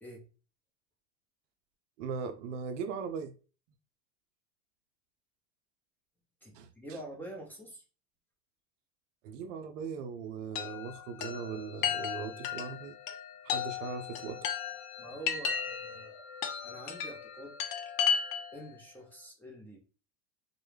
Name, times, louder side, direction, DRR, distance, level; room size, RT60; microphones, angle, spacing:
voice 1, 2.0-3.3 6.5-6.7 9.2-13.0 13.4-14.5, right 6 dB, 75° right, 0.5 m, -39 dB
voice 2, 6.4-7.8 15.0-17.5 18.5-19.8, right 1 dB, 5° left, 0.5 m, -46 dB
Chime, 10.6-18.7, left 8 dB, 55° left, 0.5 m, -35 dB
2.2 x 2.0 x 3.2 m
supercardioid pair, 115°, 38 cm